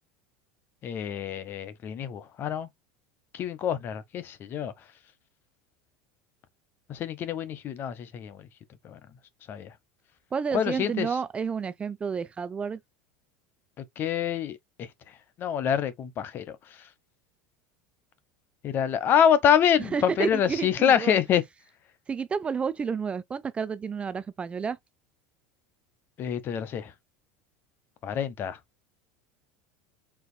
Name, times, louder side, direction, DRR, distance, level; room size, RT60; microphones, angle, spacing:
voice 1, 0.8-2.7 3.3-4.7 6.9-8.5 8.8-9.0 9.5-9.7 10.5-11.1 13.8-14.9 15.4-16.6 18.6-21.4 26.2-26.9 28.0-28.6, left 8 dB, 40° left, 1.0 m, -26 dB
voice 2, 10.3-12.8 19.8-21.2 22.1-24.8, right 6 dB, 20° right, 0.4 m, -30 dB
4.8 x 3.9 x 2.2 m
supercardioid pair, 120°, 5 cm